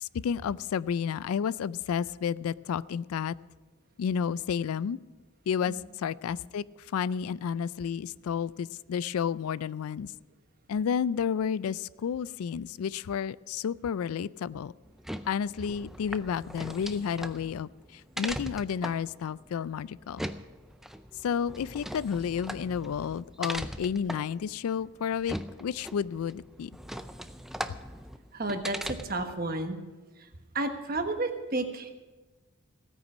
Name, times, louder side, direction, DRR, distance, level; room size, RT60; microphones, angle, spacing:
voice 1, 0.0-3.3 4.0-5.0 5.5-6.6 6.9-10.1 10.7-14.7 15.3-20.3 21.2-26.7, left 7 dB, 85° left, 20 dB, 0.3 m, -31 dB
sound 1, 14.8-29.3, equal, ahead, 0.4 m, -40 dB
voice 2, 28.3-29.8 30.2-30.3 30.5-31.9, right 2 dB, 45° right, 6 dB, 1.3 m, -32 dB
16.5 x 9.4 x 6.2 m, 1.2 s
head